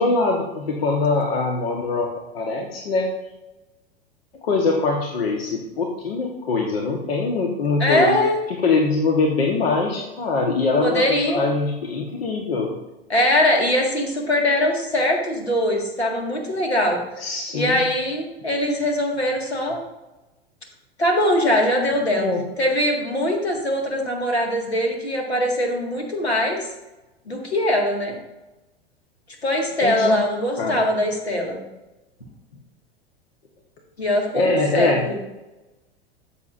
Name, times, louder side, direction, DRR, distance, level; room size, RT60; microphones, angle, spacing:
voice 1, 0.0-2.1 2.3-3.1 4.4-8.2 8.6-12.7 17.2-17.8 22.2-22.4 29.8-30.2 30.6-30.8 34.3-35.0, left 3 dB, 70° left, 1 dB, 1.3 m, -22 dB
voice 2, 7.8-8.4 10.8-11.4 13.1-17.0 17.5-19.8 21.0-22.3 22.6-26.7 27.3-28.1 29.4-31.6 34.0-35.2, left 1 dB, 85° left, 2 dB, 1.9 m, -22 dB
13.5 x 7.0 x 2.6 m, 1.0 s
figure-of-eight pair, 90°, 31 cm